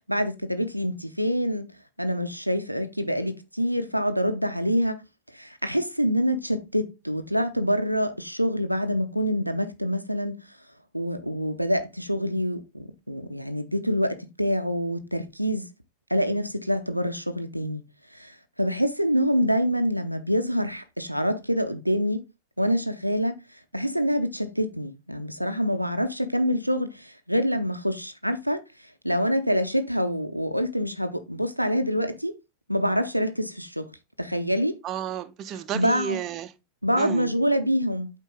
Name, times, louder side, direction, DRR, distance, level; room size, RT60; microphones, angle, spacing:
voice 1, 0.1-5.0 5.3-10.4 10.9-15.7 16.1-17.8 18.1-22.2 22.6-23.4 23.7-28.6 29.0-32.4 32.7-33.9 34.2-34.8 35.7-36.2 36.8-38.1, equal, 90° right, 0.6 m, -26 dB
voice 2, 34.8-36.5 37.0-37.3, right 10 dB, 35° right, 0.7 m, -32 dB
8.1 x 4.5 x 3.6 m
figure-of-eight pair, 90°, 0 cm